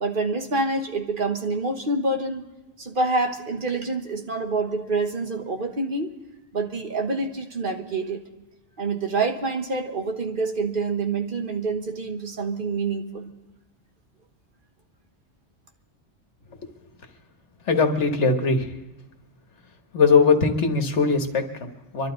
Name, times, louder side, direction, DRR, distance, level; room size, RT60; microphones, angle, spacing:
voice 1, 0.0-2.4 2.8-6.1 6.5-8.2 8.8-13.2, right 3 dB, 45° right, 4 dB, 1.4 m, -27 dB
voice 2, 17.7-18.7 19.9-22.1, left 4 dB, 75° left, 6 dB, 1.6 m, -20 dB
25.0 x 12.0 x 3.9 m, 1.1 s
omnidirectional pair, 1.2 m